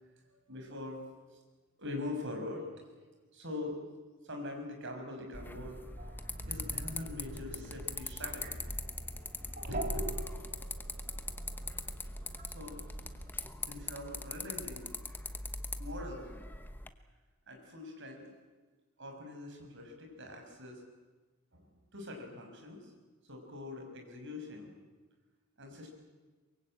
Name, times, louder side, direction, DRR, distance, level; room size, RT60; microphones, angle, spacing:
voice 1, 0.3-1.0 1.3-1.4 1.8-2.7 3.3-3.8 4.2-5.8 6.4-8.5 9.7-10.4 12.5-12.8 13.7-14.9 15.8-16.3 17.5-18.3 19.0-20.8 21.5-22.9 23.3-24.7 25.6-25.9, left 2 dB, 60° right, 2 dB, 6.0 m, -43 dB
sound 1, 5.3-16.9, left 2 dB, 10° left, 1.1 m, -42 dB
sound 2, 6.0-13.3, right 1 dB, 40° right, 2.2 m, -43 dB
23.5 x 22.5 x 8.9 m, 1.3 s
head